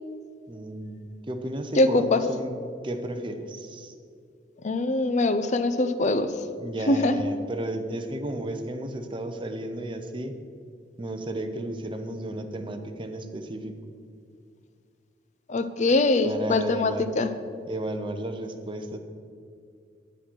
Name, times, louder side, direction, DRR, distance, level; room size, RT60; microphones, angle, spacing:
voice 1, 0.5-2.5 2.8-3.9 6.6-10.3 11.0-13.8 16.2-17.1 17.7-19.0, right 1 dB, 30° right, 6 dB, 0.7 m, -33 dB
voice 2, 1.7-2.2 4.6-6.3 6.9-7.2 15.5-17.3, left 2 dB, 40° left, 10 dB, 0.6 m, -23 dB
9.7 x 6.5 x 6.1 m, 2.3 s
head